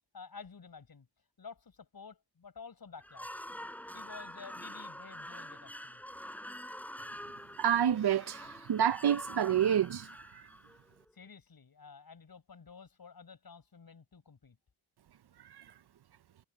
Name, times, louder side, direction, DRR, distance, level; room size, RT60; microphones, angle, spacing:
voice 1, 0.1-1.1 1.4-3.5 3.9-6.0 11.1-14.6, left 5 dB, 55° left, 6.4 m, -51 dB
sound 1, 3.0-11.1, equal, 5° left, 6.7 m, -46 dB
voice 2, 7.6-10.1, right 9 dB, 70° right, 0.6 m, -28 dB
wide cardioid pair, 140°, 41 cm